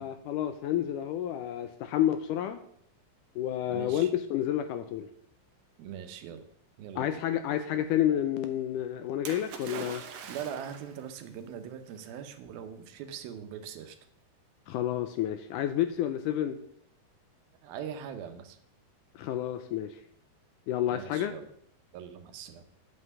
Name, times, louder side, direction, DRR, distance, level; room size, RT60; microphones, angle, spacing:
voice 1, 0.0-2.6 3.4-5.1 7.0-10.0 14.7-16.6 19.2-20.0 20.7-21.3, left 11 dB, 80° left, 9 dB, 1.9 m, -30 dB
voice 2, 3.7-4.1 5.8-6.5 6.8-7.2 10.3-14.0 17.6-18.6 20.9-21.5 21.9-22.6, right 8 dB, 85° right, 8 dB, 2.8 m, -41 dB
Splash splatter, 9.2-11.0 12.0-12.1, right 7 dB, 70° right, 1.5 m, -42 dB
9.2 x 5.5 x 8.1 m, 0.67 s
omnidirectional pair, 4.2 m